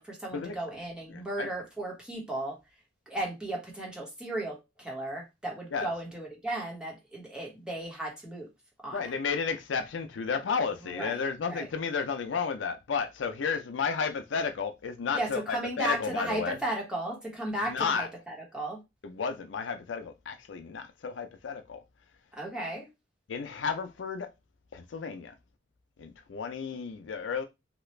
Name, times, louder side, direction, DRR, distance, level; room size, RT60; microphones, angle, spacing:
voice 1, 0.0-2.6 3.1-8.5 8.8-9.0 10.8-11.2 11.5-11.7 15.1-18.8 22.3-22.9, right 1 dB, 5° right, 1.1 m, -35 dB
voice 2, 1.1-1.5 5.7-5.9 8.9-16.6 17.7-18.1 19.0-21.8 23.3-24.3 24.7-25.3 26.0-27.4, left 5 dB, 85° left, 0.5 m, -32 dB
2.9 x 2.4 x 3.1 m
head